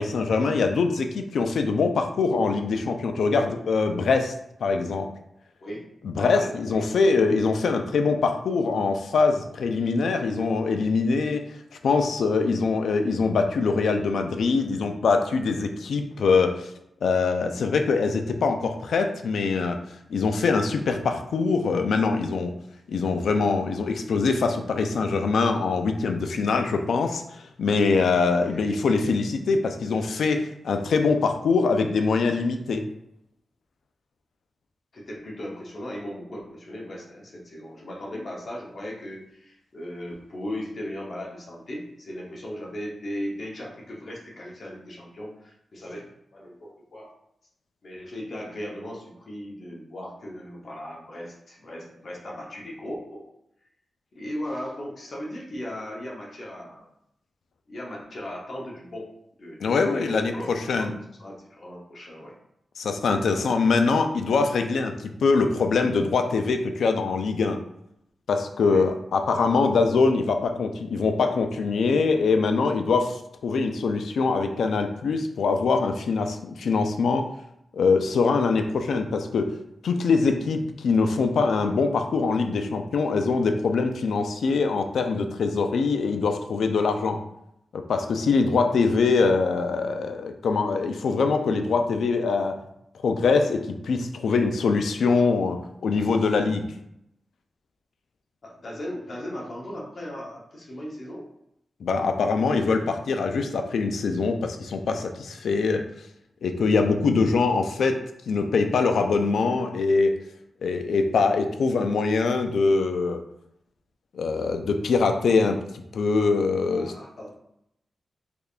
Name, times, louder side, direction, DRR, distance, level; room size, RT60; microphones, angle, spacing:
voice 1, 0.0-4.3 4.6-5.1 6.0-11.4 11.8-16.7 17.0-19.8 20.1-22.5 22.9-32.8 59.6-61.0 62.8-67.6 68.3-77.3 77.7-79.5 79.8-87.2 87.7-92.6 93.0-96.7 101.8-105.8 106.4-108.0 108.3-110.2 110.6-113.2 114.1-115.6 115.9-116.9, left 4 dB, 90° left, 6 dB, 0.4 m, -23 dB
voice 2, 6.2-6.9 28.3-28.7 34.9-47.1 47.8-53.3 54.1-56.9 57.7-59.1 59.4-60.9 61.2-62.4 63.2-63.8 68.6-68.8 98.4-101.3 116.7-117.4, left 1 dB, 55° left, -3 dB, 0.9 m, -37 dB
3.5 x 3.2 x 2.4 m, 0.77 s
wide cardioid pair, 105°, 0 cm